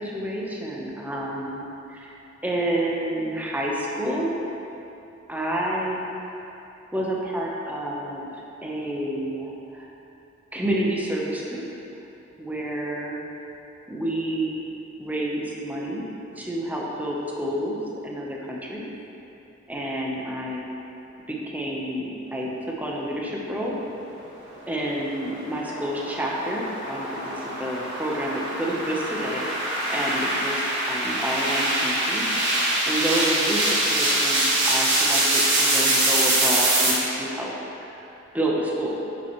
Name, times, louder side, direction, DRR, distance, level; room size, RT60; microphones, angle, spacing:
voice 1, 0.0-1.6 1.9-2.1 2.4-4.4 5.3-6.4 6.9-9.9 10.5-11.6 12.4-13.2 13.9-14.6 15.0-16.1 16.4-17.8 18.0-18.9 19.7-20.6 21.3-23.8 24.7-32.3 32.9-38.0 38.3-39.0, right 1 dB, 10° right, -3 dB, 0.9 m, -29 dB
sound 1, 24.9-36.9, right 1 dB, 65° right, 1.7 m, -24 dB
7.7 x 7.5 x 3.1 m, 3.0 s
head